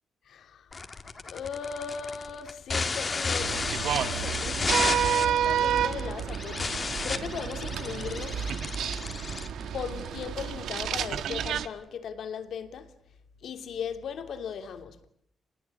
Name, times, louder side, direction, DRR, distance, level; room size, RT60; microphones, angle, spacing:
voice 1, 0.2-0.7 1.2-8.4 9.7-12.9 13.4-15.0, left 7 dB, 70° left, 3.2 m, -38 dB
sound 1, 0.7-10.3, left 4 dB, 30° left, 2.2 m, -32 dB
sound 2, 3.4-11.7, right 9 dB, 85° right, 1.6 m, -30 dB
29.5 x 21.0 x 8.8 m
cardioid pair, 130°, 0 cm